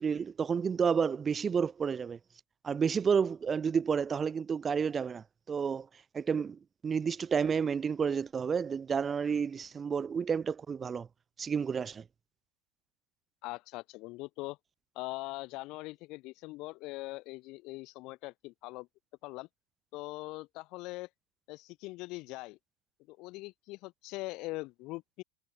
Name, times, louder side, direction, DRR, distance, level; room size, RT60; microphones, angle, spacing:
voice 1, 0.0-2.2 2.6-5.9 6.1-11.1 11.4-12.0, right 6 dB, 20° right, 0.4 m, -30 dB
voice 2, 13.4-14.6 15.0-18.9 19.2-19.5 19.9-21.1 21.5-22.6 23.1-25.2, left 22 dB, 40° left, 5.3 m, -42 dB
figure-of-eight pair, 90°, 0 cm